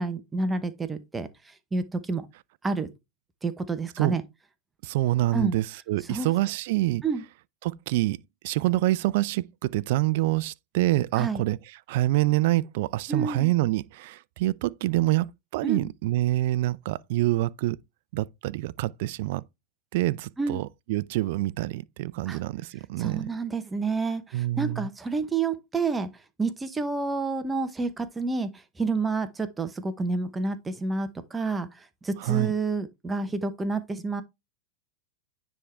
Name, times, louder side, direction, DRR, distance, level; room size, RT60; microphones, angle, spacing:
voice 1, 0.0-2.3 2.6-2.9 3.4-4.2 5.3-5.6 6.1-6.3 7.0-7.2 11.1-11.4 13.1-13.5 15.6-15.9 20.4-20.6 22.3-22.4 23.0-26.1 26.4-34.2, right 4 dB, 15° right, 0.8 m, -29 dB
voice 2, 4.8-7.0 7.6-8.2 8.4-11.6 11.9-17.8 18.1-19.4 19.9-23.3 24.3-24.9 32.2-32.5, right 17 dB, 65° right, 0.4 m, -26 dB
9.9 x 3.6 x 3.3 m
hypercardioid pair, 115°, 0 cm